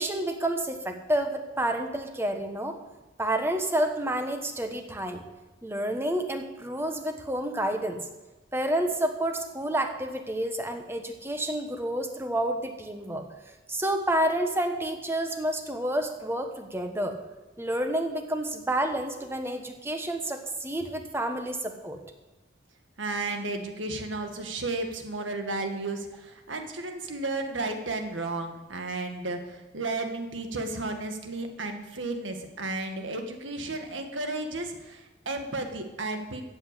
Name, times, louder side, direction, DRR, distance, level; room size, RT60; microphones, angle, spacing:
voice 1, 0.0-2.8 3.2-5.2 5.6-8.0 8.5-13.2 13.7-17.1 17.6-22.0, right 1 dB, 15° right, 5 dB, 1.2 m, -29 dB
voice 2, 23.0-36.4, right 2 dB, 90° right, 5 dB, 1.8 m, -33 dB
13.5 x 8.0 x 8.2 m, 1.1 s
head